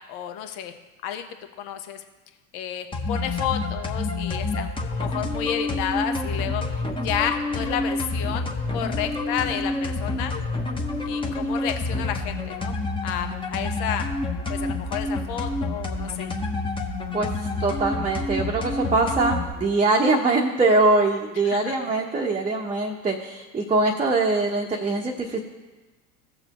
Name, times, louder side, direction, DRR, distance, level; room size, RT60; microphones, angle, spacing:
voice 1, 0.1-0.7 1.0-1.3 1.6-2.0 2.5-10.4 11.1-12.7 13.0-14.1 14.5-16.3 21.4-21.8, left 9 dB, 55° left, 7 dB, 1.1 m, -31 dB
sound 1, 2.9-19.5, left 2 dB, 10° left, 1.0 m, -28 dB
voice 2, 17.6-25.4, right 3 dB, 15° right, -1 dB, 0.9 m, -22 dB
16.0 x 6.8 x 3.0 m, 1.2 s
hypercardioid pair, 85°, 46 cm